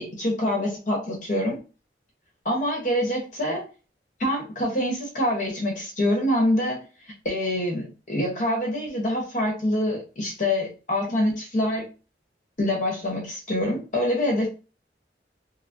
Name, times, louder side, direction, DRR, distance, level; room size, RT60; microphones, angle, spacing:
voice 1, 0.0-1.6 2.4-3.7 4.2-6.8 7.2-11.9 12.6-14.5, left 1 dB, 45° left, -1 dB, 1.0 m, -25 dB
3.5 x 2.1 x 2.6 m, 0.32 s
head